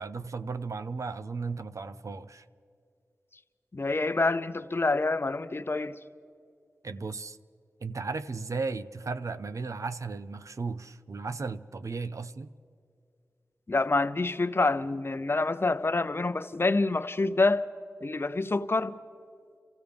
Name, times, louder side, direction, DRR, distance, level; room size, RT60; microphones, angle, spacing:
voice 1, 0.0-2.4 6.8-7.4 7.8-12.5, right 4 dB, 65° right, 0.6 m, -35 dB
voice 2, 3.7-5.9 13.7-17.6 18.0-19.0, left 3 dB, 40° left, 0.7 m, -27 dB
29.0 x 14.5 x 3.5 m
cardioid pair, 45°, 6 cm